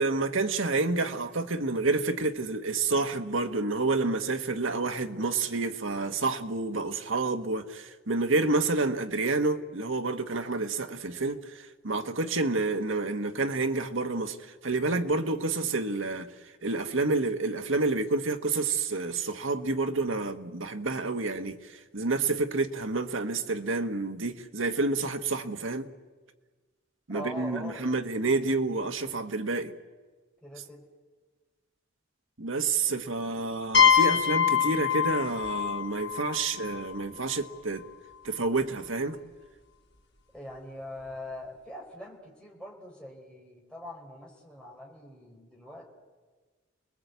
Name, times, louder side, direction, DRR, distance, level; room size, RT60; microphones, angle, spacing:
voice 1, 0.0-16.3 16.6-25.9 27.1-29.7 32.4-37.8 38.2-39.2, right 3 dB, 75° right, 1.4 m, -29 dB
voice 2, 27.1-27.9 30.4-30.8 40.3-45.8, left 1 dB, 5° left, 4.5 m, -43 dB
sound 1, 33.7-37.4, left 8 dB, 60° left, 4.4 m, -25 dB
29.0 x 20.5 x 8.2 m
head